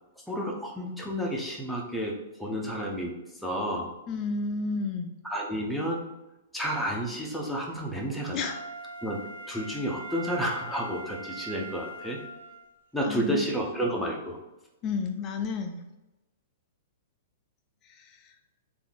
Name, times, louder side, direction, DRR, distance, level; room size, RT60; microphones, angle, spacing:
voice 1, 0.3-3.9 5.2-6.0 6.5-8.5 9.0-12.2 12.9-14.4, equal, ahead, -2 dB, 0.7 m, -31 dB
voice 2, 4.1-5.1 8.3-8.6 13.0-13.4 14.8-15.8 17.8-18.3, left 4 dB, 30° left, 4 dB, 0.4 m, -31 dB
Wind instrument woodwind instrument, 8.4-12.7 13.2-13.3, right 2 dB, 70° right, 0.6 m, -42 dB
3.5 x 2.6 x 3.5 m, 0.98 s
hypercardioid pair, 120°, 0 cm